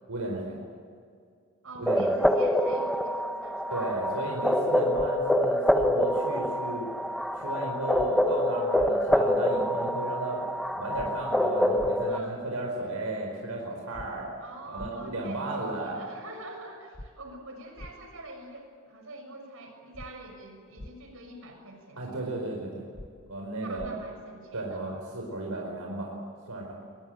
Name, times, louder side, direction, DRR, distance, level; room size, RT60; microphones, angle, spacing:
voice 1, 0.1-0.6 1.8-2.1 3.7-6.8 7.4-10.4 10.7-14.3 14.7-16.0 22.0-22.8 23.3-23.9 24.5-26.1 26.5-26.7, right 2 dB, 85° right, 0 dB, 4.8 m, -34 dB
voice 2, 1.6-3.8 12.0-12.4 14.4-22.4 23.6-25.0, right 2 dB, 65° right, 3 dB, 6.5 m, -45 dB
sound 1, 1.9-12.2, equal, ahead, 0.9 m, -26 dB
sound 2, 4.9-5.1 5.8-5.9 7.9-8.1 8.8-8.9 10.9-11.1 11.8-11.9 13.9-14.1 14.8-14.9 16.9-17.1 17.8-17.9 19.9-20.1 20.8-20.9 22.9-23.1 23.8-23.9, left 1 dB, 30° left, 1.0 m, -42 dB
23.0 x 22.5 x 9.1 m, 2.2 s
head